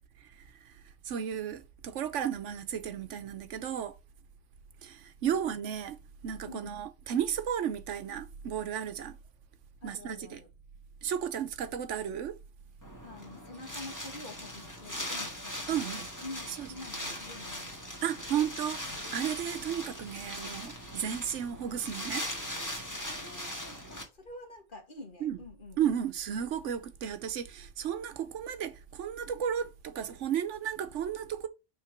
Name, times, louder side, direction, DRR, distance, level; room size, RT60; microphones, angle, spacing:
voice 1, 1.0-3.9 4.8-6.0 6.2-9.2 9.8-10.4 11.0-12.3 15.7-16.1 16.5-16.7 18.0-22.3 25.2-25.4 25.8-31.5, right 9 dB, 85° right, 1.1 m, -34 dB
voice 2, 6.5-6.8 9.8-10.5 13.0-17.8 23.1-25.9, left 2 dB, 45° left, 1.7 m, -47 dB
Wind, 12.8-24.0, left 1 dB, 15° left, 1.7 m, -40 dB
5.8 x 3.6 x 5.9 m
omnidirectional pair, 1.2 m